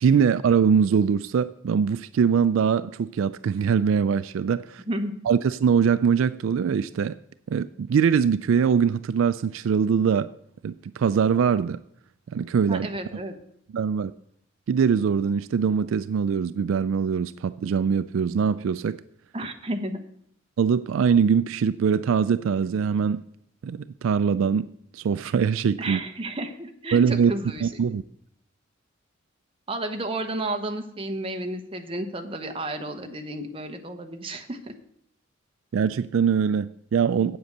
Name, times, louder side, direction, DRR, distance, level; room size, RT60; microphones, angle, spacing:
voice 1, 0.0-4.8 5.3-7.2 7.5-10.3 10.6-11.8 12.3-12.9 13.7-14.1 14.7-19.0 20.6-23.2 23.6-24.7 24.9-26.0 26.9-27.3 27.6-28.0 35.7-37.4, right 6 dB, 75° right, 0.3 m, -22 dB
voice 2, 12.7-13.4 19.3-20.0 25.8-27.8 29.7-34.7, right 1 dB, 25° right, 0.9 m, -32 dB
8.3 x 7.8 x 6.6 m
head